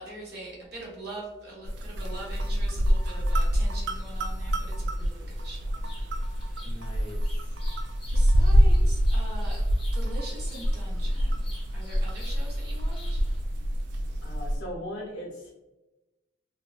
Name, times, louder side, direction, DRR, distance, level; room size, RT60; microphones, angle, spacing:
voice 1, 0.0-5.9 8.1-9.6 9.9-11.4 11.7-13.3, right 1 dB, 60° right, -4 dB, 0.9 m, -42 dB
sound 1, 1.6-14.6, equal, 75° right, 0.3 m, -26 dB
Bird vocalization bird call bird song, 4.9-13.4, left 1 dB, 25° left, 0.7 m, -52 dB
voice 2, 6.6-7.4 14.2-15.5, equal, 80° left, -4 dB, 0.8 m, -39 dB
2.7 x 2.1 x 2.3 m, 1.0 s
head